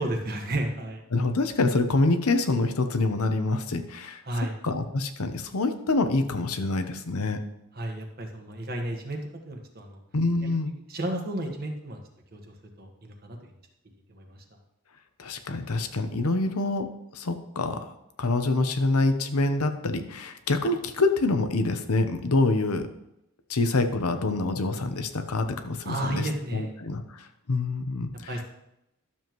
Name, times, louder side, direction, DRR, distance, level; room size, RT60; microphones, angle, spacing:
voice 1, 0.0-1.0 4.2-4.5 7.7-9.2 9.5-10.0 10.4-12.0 12.3-13.4 14.1-14.4 25.8-26.7 28.3-28.4, right 1 dB, 45° right, 2 dB, 1.4 m, -32 dB
voice 2, 1.1-4.2 4.6-7.4 10.1-10.7 15.2-17.9 18.2-22.9 23.5-28.3, left 2 dB, 85° left, 8 dB, 0.8 m, -26 dB
12.0 x 7.1 x 3.1 m, 0.84 s
head